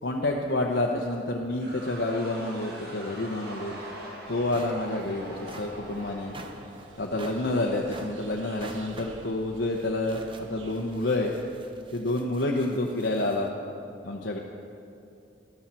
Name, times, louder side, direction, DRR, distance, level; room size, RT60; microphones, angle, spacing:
voice 1, 0.0-3.7 4.3-6.3 7.0-11.3 11.9-13.5 14.0-14.4, left 2 dB, 65° left, -1 dB, 0.8 m, -28 dB
sound 1, 1.6-7.4, right 1 dB, 55° right, 1.9 m, -43 dB
sound 2, 4.2-11.5, right 2 dB, 85° right, 1.0 m, -50 dB
sound 3, 4.5-13.5, right 2 dB, 25° right, 0.6 m, -47 dB
13.5 x 12.5 x 4.3 m, 2.7 s
head